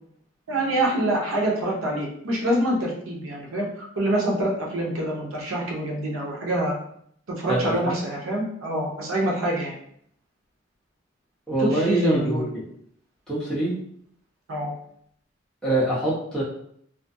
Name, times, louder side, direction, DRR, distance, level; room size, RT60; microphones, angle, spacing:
voice 1, 0.5-6.7 7.3-9.7 11.6-12.5 14.5-14.7, right 1 dB, 85° right, -2 dB, 0.7 m, -26 dB
voice 2, 7.5-8.0 11.5-12.6 13.3-13.8 15.6-16.4, right 1 dB, 5° left, -10 dB, 0.8 m, -24 dB
2.4 x 2.2 x 2.6 m, 0.68 s
head